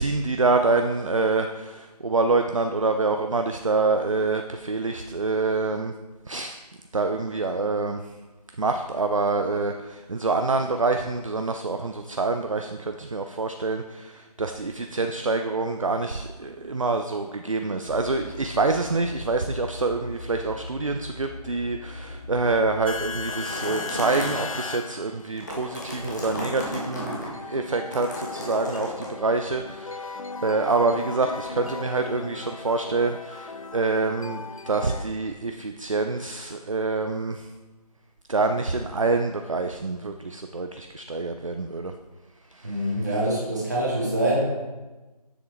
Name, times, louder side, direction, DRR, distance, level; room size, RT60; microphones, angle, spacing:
voice 1, 0.0-5.9 6.3-6.6 6.9-8.0 8.6-37.5 38.3-41.9 42.5-42.9, right 3 dB, 55° right, 6 dB, 0.4 m, -26 dB
sound 1, 17.9-25.3 26.0-35.0, left 4 dB, 55° left, 0.5 m, -38 dB
sound 2, 23.3-24.6 25.2-27.3 27.9-29.1, left 1 dB, 25° left, 1.3 m, -34 dB
voice 2, 42.6-44.4, right 1 dB, 25° right, -6 dB, 1.7 m, -25 dB
7.1 x 6.9 x 3.3 m, 1.2 s
figure-of-eight pair, 180°, 21 cm